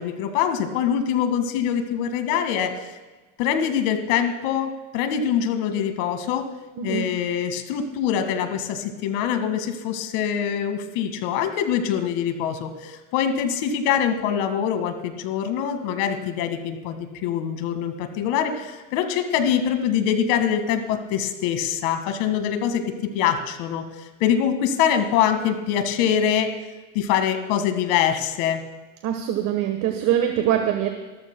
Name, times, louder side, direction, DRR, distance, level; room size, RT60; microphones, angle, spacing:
voice 1, 0.0-2.9 3.4-6.5 6.8-26.5 26.9-28.6, left 8 dB, 60° left, 7 dB, 1.9 m, -24 dB
voice 2, 29.0-30.9, right 10 dB, 50° right, 5 dB, 1.3 m, -23 dB
26.5 x 13.5 x 2.2 m, 1.2 s
supercardioid pair, 125°, 41 cm